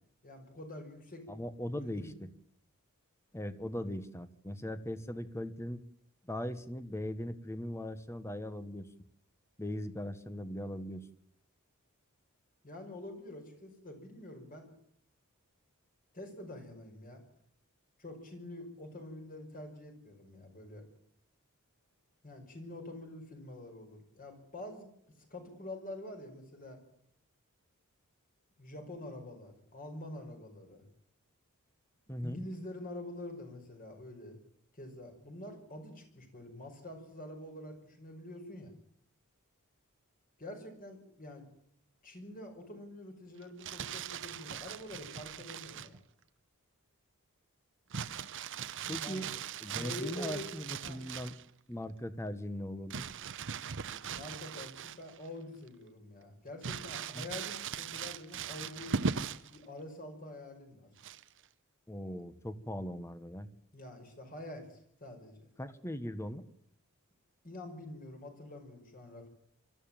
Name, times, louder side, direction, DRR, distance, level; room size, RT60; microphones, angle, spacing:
voice 1, 0.2-1.3 1.7-2.1 12.6-14.7 16.1-17.2 18.0-20.9 22.2-24.9 25.3-26.8 28.6-30.8 32.2-34.4 34.7-38.7 40.4-41.5 42.0-46.0 49.0-49.3 49.7-50.5 50.8-51.0 54.1-59.0 59.5-60.9 63.7-65.4 67.4-69.3, left 1 dB, 40° left, 4 dB, 5.4 m, -46 dB
voice 2, 1.3-2.3 3.3-5.8 6.2-8.9 9.6-11.1 32.1-32.4 48.9-49.3 49.6-51.3 51.7-53.1 57.1-57.3 61.9-63.5 65.6-66.4, left 1 dB, 10° left, 12 dB, 1.2 m, -39 dB
Crumpling crinkling, 43.4-46.0 47.9-51.5 52.9-55.3 55.7-55.8 56.6-59.6 61.0-61.4, right 6 dB, 55° right, 0.9 m, -39 dB
25.0 x 13.5 x 9.0 m, 0.69 s
head